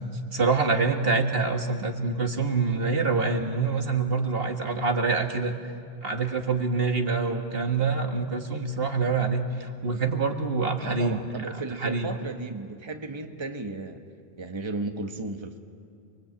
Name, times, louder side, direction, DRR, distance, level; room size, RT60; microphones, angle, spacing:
voice 1, 0.3-5.5 6.0-11.2 11.8-12.1, right 4 dB, 65° right, 5 dB, 1.9 m, -26 dB
voice 2, 10.8-14.0 14.4-15.6, right 2 dB, 25° right, 5 dB, 1.4 m, -34 dB
29.5 x 22.5 x 8.7 m, 2.4 s
omnidirectional pair, 1.1 m